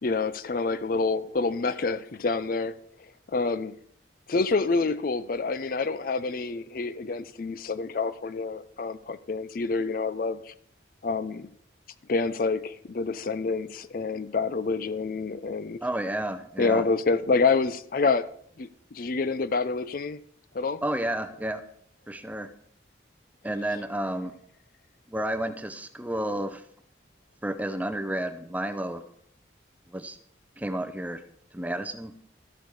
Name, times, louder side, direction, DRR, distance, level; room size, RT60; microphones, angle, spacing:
voice 1, 0.0-2.8 3.3-3.7 4.3-10.5 11.0-11.5 12.1-15.8 16.6-18.3 18.6-20.2 20.5-20.8, left 4 dB, 50° left, 0.4 m, -27 dB
voice 2, 15.8-16.8 20.8-21.6 22.1-22.5 23.4-24.3 25.1-26.6 27.4-29.0 29.9-30.2 30.6-31.2 31.5-32.1, right 1 dB, 10° right, 0.6 m, -31 dB
13.0 x 8.0 x 4.8 m
head